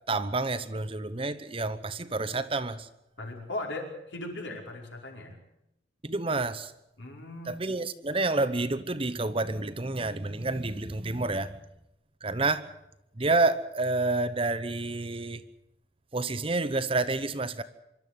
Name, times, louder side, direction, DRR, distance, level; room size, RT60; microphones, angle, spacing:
voice 1, 0.1-2.9 6.0-6.7 7.5-11.5 12.2-12.6 13.2-15.4 16.1-17.6, right 3 dB, 30° right, 0.9 m, -29 dB
voice 2, 3.2-5.4 7.0-7.6, left 2 dB, 75° left, 5.2 m, -38 dB
25.5 x 12.5 x 9.4 m
head